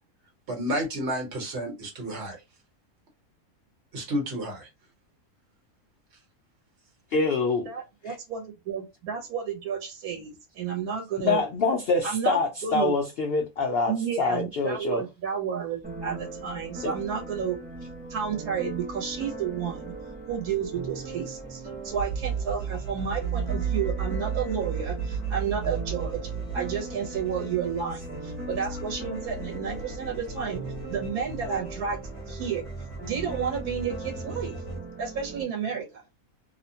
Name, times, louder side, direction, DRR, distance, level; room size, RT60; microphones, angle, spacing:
voice 1, 0.5-2.4 3.9-4.7, equal, 50° right, 1.2 m, -31 dB
voice 2, 7.1-7.7 8.1-8.2 11.2-15.0 16.8-16.9, left 4 dB, 70° left, 0.5 m, -26 dB
voice 3, 7.7-11.4 12.0-12.4 12.6-12.9 13.9-17.6 18.1-19.9 20.3-30.6 30.9-32.6 33.0-34.5 35.0-36.0, right 7 dB, 80° right, 1.2 m, -31 dB
sound 1, 15.8-35.4, right 3 dB, 10° right, 0.5 m, -40 dB
sound 2, 21.9-34.8, right 5 dB, 30° left, 0.7 m, -35 dB
2.7 x 2.1 x 2.7 m
omnidirectional pair, 1.5 m